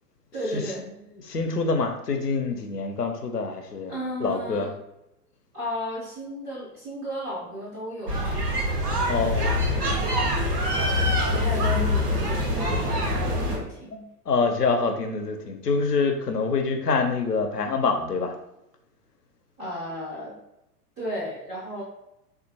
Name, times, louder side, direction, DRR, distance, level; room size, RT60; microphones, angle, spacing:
voice 1, 0.3-0.9 3.9-4.8 5.5-8.4 8.8-9.2 9.7-10.0 11.3-14.0 19.6-20.4 21.0-21.8, equal, 10° right, -8 dB, 0.3 m, -34 dB
voice 2, 1.2-3.9 4.2-4.7 9.1-9.6 12.6-12.8 13.5-13.6 14.3-18.3, left 4 dB, 85° left, 4 dB, 0.6 m, -26 dB
sound 1, 8.1-13.6, left 1 dB, 80° right, 1.0 m, -24 dB
3.5 x 2.4 x 2.6 m, 0.88 s
figure-of-eight pair, 100°, 47 cm